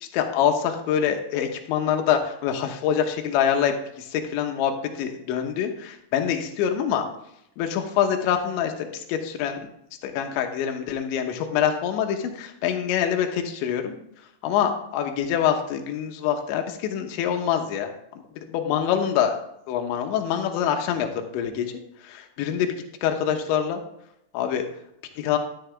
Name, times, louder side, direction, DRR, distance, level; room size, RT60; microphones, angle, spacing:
voice 1, 0.0-7.1 7.6-9.6 10.0-14.0 14.4-17.9 18.4-19.4 19.7-21.7 22.0-23.8 24.3-24.7 25.2-25.4, left 9 dB, 80° left, 5 dB, 3.4 m, -25 dB
13.0 x 9.8 x 3.5 m, 0.76 s
omnidirectional pair, 5.3 m